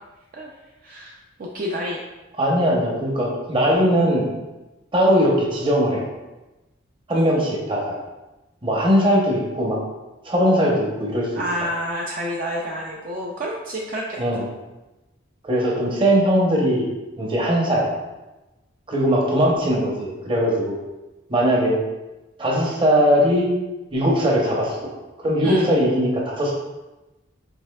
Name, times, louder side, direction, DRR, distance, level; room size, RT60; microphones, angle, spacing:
voice 1, 0.8-1.1 1.4-2.0 7.1-7.3 11.4-14.2 25.4-25.7, equal, 45° right, -2 dB, 0.4 m, -28 dB
voice 2, 2.4-4.3 4.9-6.0 7.1-7.9 8.6-9.8 10.2-11.3 14.2-14.5 15.4-16.9 17.2-17.9 18.9-20.8 21.3-21.8 22.4-23.5 23.9-24.8 25.2-26.5, equal, 25° right, -2 dB, 0.8 m, -20 dB
5.4 x 3.4 x 2.3 m, 1.1 s
head